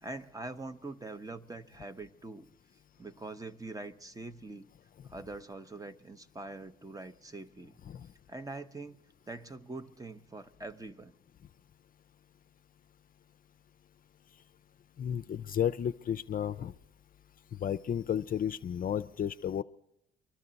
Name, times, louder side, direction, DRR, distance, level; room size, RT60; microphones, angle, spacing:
voice 1, 0.0-2.5 3.0-4.7 5.0-7.8 8.3-9.0 9.3-11.1, right 2 dB, 15° right, 11 dB, 0.8 m, -44 dB
voice 2, 15.0-16.7 17.6-19.6, left 9 dB, 45° left, 10 dB, 0.5 m, -32 dB
24.0 x 12.5 x 4.0 m, 0.84 s
cardioid pair, 90°, 20 cm